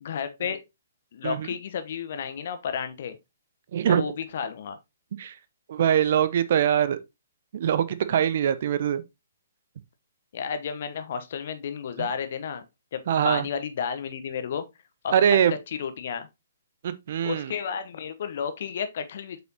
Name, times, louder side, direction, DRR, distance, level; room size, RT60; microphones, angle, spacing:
voice 1, 0.0-0.6 1.1-3.2 3.8-4.8 10.3-12.6 12.9-14.6 15.0-15.1 15.5-16.3 17.2-19.4, left 7 dB, 50° left, 1.0 m, -32 dB
voice 2, 5.7-7.0 7.5-9.0 13.1-13.4 15.1-15.5 16.8-17.5, right 9 dB, 50° right, 0.7 m, -22 dB
7.7 x 5.5 x 2.9 m
figure-of-eight pair, 125°, 0 cm